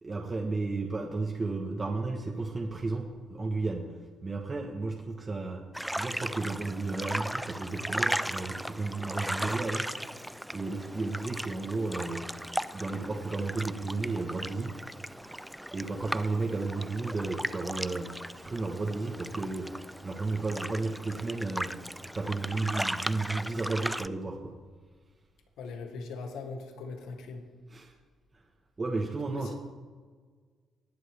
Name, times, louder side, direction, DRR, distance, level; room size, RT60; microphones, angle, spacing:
voice 1, 0.0-3.9 4.2-5.6 6.0-9.9 10.5-12.3 12.7-14.8 15.7-19.7 20.0-21.8 22.1-24.5 27.7-27.9 28.3-28.4 28.8-29.5, right 3 dB, 30° right, 1 dB, 1.3 m, -33 dB
sound 1, 5.7-24.1, equal, 5° right, 0.3 m, -37 dB
voice 2, 25.6-27.4 29.3-29.5, left 4 dB, 90° left, 4 dB, 1.6 m, -40 dB
19.5 x 7.5 x 3.5 m, 1.5 s
cardioid pair, 90°, 0 cm